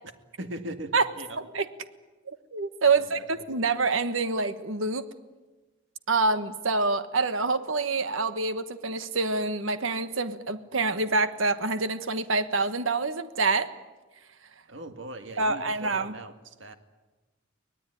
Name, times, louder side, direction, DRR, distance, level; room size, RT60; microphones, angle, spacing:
voice 1, 0.4-1.4 3.0-3.3 14.7-16.7, right 1 dB, 65° right, 7 dB, 2.0 m, -40 dB
voice 2, 1.4-1.7 2.5-5.1 6.1-13.7 15.4-16.1, right 3 dB, 90° right, 11 dB, 1.4 m, -26 dB
24.0 x 19.0 x 9.9 m, 1.2 s
head